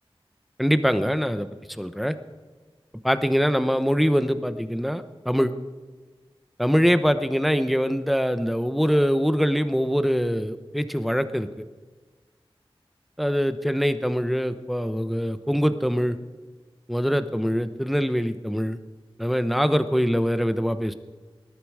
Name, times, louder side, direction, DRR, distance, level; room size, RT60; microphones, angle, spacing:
voice 1, 0.6-1.5 1.8-2.2 3.0-5.5 6.6-11.5 13.2-16.2 16.9-18.8 19.2-20.9, equal, ahead, 11 dB, 0.9 m, -23 dB
20.0 x 12.0 x 4.9 m, 1.4 s
wide cardioid pair, 50°, 10 cm